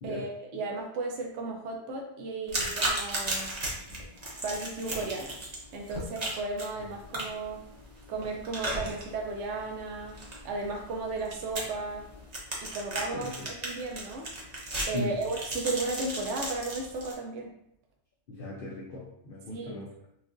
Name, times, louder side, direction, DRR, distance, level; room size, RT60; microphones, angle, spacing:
voice 1, 0.0-3.6 4.4-5.4 5.7-7.6 8.1-10.2 10.4-12.1 12.6-14.3 14.9-17.5 19.5-19.9, right 3 dB, 70° right, 0 dB, 0.9 m, -35 dB
sound 1, 2.5-17.1, right 1 dB, 35° right, 0.9 m, -36 dB
voice 2, 18.3-20.1, equal, 55° left, -3 dB, 0.7 m, -38 dB
5.8 x 2.5 x 2.5 m, 0.76 s
omnidirectional pair, 1.3 m